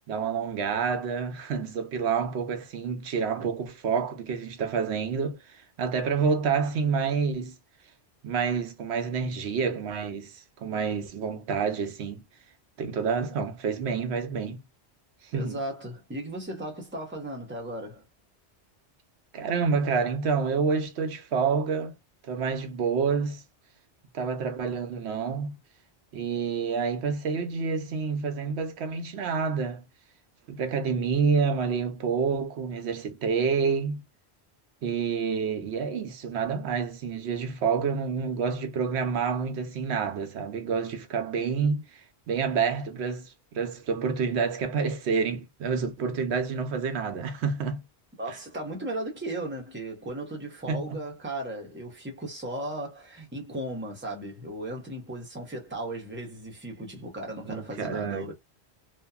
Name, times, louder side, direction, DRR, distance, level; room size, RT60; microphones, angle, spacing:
voice 1, 0.1-7.5 8.2-12.2 12.8-14.6 15.2-15.6 19.3-21.9 22.2-23.4 24.1-25.6 26.1-29.8 30.5-34.0 34.8-47.8 48.3-48.4 50.7-51.0 57.5-58.3, right 5 dB, 80° right, 0.9 m, -28 dB
voice 2, 15.3-18.0 48.2-58.3, right 1 dB, 10° right, 0.7 m, -36 dB
2.7 x 2.3 x 2.3 m
omnidirectional pair, 1.1 m